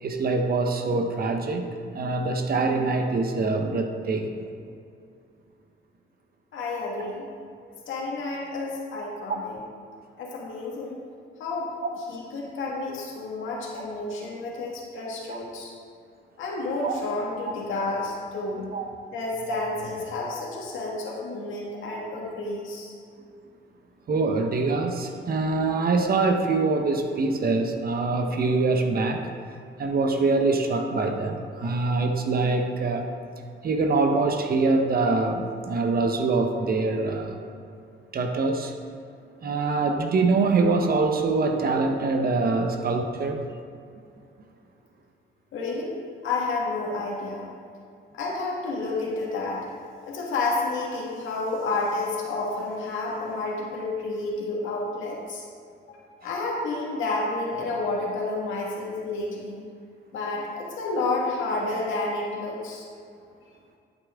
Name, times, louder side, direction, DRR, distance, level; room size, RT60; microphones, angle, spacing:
voice 1, 0.0-4.4 11.8-11.9 15.3-15.4 16.8-16.9 18.7-18.9 24.1-29.2 29.8-33.1 33.6-37.4 38.1-38.7 39.4-43.4, right 3 dB, 50° right, 4 dB, 1.1 m, -24 dB
voice 2, 6.5-7.3 7.9-9.6 10.2-11.0 11.4-11.7 12.1-15.7 16.4-18.7 19.1-22.9 45.5-46.0 46.2-47.4 48.1-49.6 50.0-55.4 55.9-59.6 60.1-62.9, left 2 dB, 80° left, -3 dB, 1.9 m, -30 dB
9.2 x 9.0 x 3.7 m, 2.4 s
cardioid pair, 90°, 20 cm